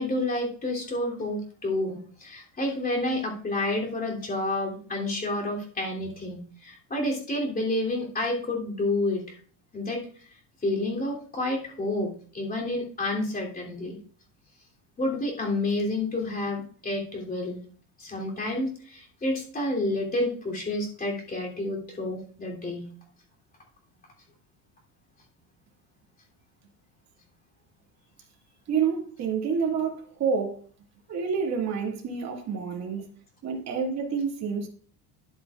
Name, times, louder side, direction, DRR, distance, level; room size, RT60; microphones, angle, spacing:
voice 1, 0.0-9.4 9.7-10.0 10.6-14.0 15.0-17.6 18.0-22.9, left 2 dB, 20° left, 3.0 m, -29 dB
voice 2, 28.7-30.6 31.1-33.0 33.4-34.7, right 6 dB, 40° right, 2.2 m, -28 dB
10.5 x 9.3 x 2.4 m
cardioid pair, 130°, 43 cm